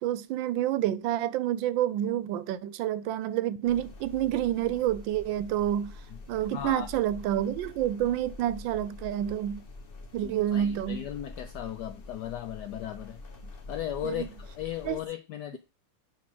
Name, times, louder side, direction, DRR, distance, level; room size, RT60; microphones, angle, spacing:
voice 1, 0.0-6.0 6.3-9.6 10.1-11.0 14.0-14.3 14.8-15.0, right 11 dB, 80° right, 1.3 m, -28 dB
sound 1, 3.6-15.1, left 2 dB, 40° left, 0.9 m, -46 dB
voice 2, 6.5-6.9 10.2-13.2 13.7-15.6, left 12 dB, 70° left, 1.0 m, -36 dB
5.4 x 4.9 x 6.0 m
omnidirectional pair, 2.1 m